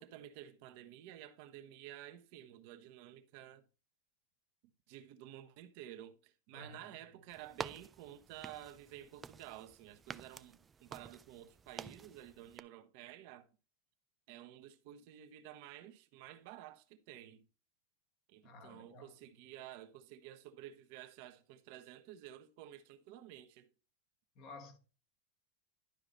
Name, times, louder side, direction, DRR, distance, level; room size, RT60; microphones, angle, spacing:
voice 1, 0.0-3.6 4.9-13.5 14.3-17.5 18.3-23.7, right 12 dB, 55° right, 1.2 m, -52 dB
voice 2, 6.5-6.9 18.4-19.1 24.3-24.8, left 3 dB, 40° left, 1.7 m, -53 dB
sound 1, 7.3-12.6, right 5 dB, 15° right, 0.3 m, -50 dB
12.0 x 4.9 x 4.0 m
supercardioid pair, 150°, 0 cm